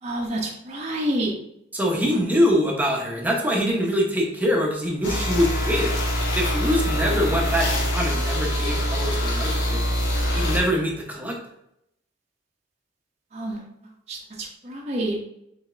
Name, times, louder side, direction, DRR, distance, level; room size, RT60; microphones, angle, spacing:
voice 1, 0.0-1.3 13.3-13.6 14.1-15.2, right 1 dB, 35° right, -2 dB, 0.7 m, -28 dB
voice 2, 1.7-6.0 6.4-9.8 10.4-11.4, equal, 10° right, -1 dB, 0.9 m, -24 dB
sound 1, 5.0-10.6, equal, 70° left, 1.4 m, -24 dB
5.1 x 4.1 x 2.5 m, 0.79 s
head